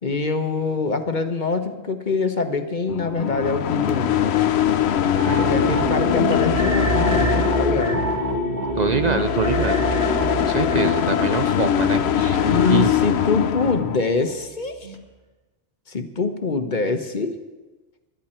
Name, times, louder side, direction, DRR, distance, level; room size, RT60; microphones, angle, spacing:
voice 1, 0.0-4.2 5.4-8.0 12.4-15.0 15.9-17.4, left 4 dB, 50° left, 7 dB, 1.2 m, -24 dB
sound 1, 2.9-14.0, left 9 dB, 85° left, 1.0 m, -22 dB
sound 2, 5.1-14.5 14.8-14.9, right 3 dB, 75° right, 2.4 m, -28 dB
voice 2, 5.2-5.8 8.7-9.8 10.4-12.4 12.7-12.9, right 5 dB, 45° right, 9 dB, 0.7 m, -25 dB
21.5 x 12.5 x 4.4 m, 1.2 s
omnidirectional pair, 1.1 m